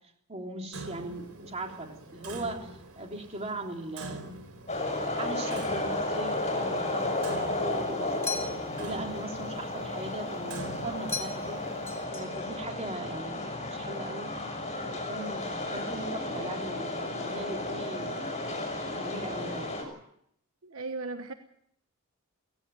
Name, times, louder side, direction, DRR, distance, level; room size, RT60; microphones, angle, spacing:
voice 1, 0.3-4.3 5.1-11.6 12.1-14.3 14.8-18.3 18.9-19.8, right 2 dB, 30° right, 3.5 m, -39 dB
Clock, 0.7-12.0, right 2 dB, 85° right, 3.9 m, -45 dB
sound 1, 4.7-19.8, left 2 dB, 35° left, 6.1 m, -33 dB
sound 2, 8.2-8.9 11.1-11.6 11.9-12.6, left 5 dB, 10° left, 3.5 m, -37 dB
voice 2, 20.6-21.3, right 3 dB, 70° right, 1.1 m, -36 dB
17.5 x 16.5 x 9.3 m
head